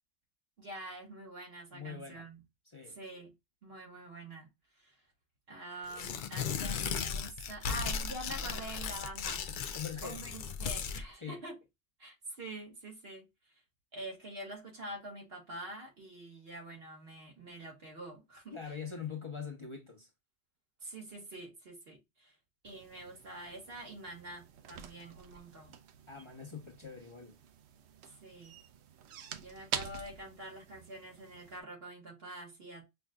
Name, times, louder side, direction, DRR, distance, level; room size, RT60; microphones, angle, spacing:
voice 1, 0.6-2.4 2.9-3.3 3.6-4.5 4.8-5.0 5.5-9.4 10.0-11.6 12.0-13.3 13.9-18.6 20.8-22.4 22.6-25.7 28.1-28.6 29.4-32.8, right 1 dB, 65° right, 2.0 m, -46 dB
voice 2, 1.7-2.3 2.7-3.0 9.7-10.2 11.2-11.4 18.5-20.1 26.1-27.4, left 6 dB, 30° left, 0.9 m, -43 dB
Tearing, 5.9-11.0, left 6 dB, 60° left, 0.6 m, -36 dB
sound 1, 22.6-31.6, right 8 dB, 90° right, 0.9 m, -46 dB
5.7 x 2.5 x 2.2 m
omnidirectional pair, 1.1 m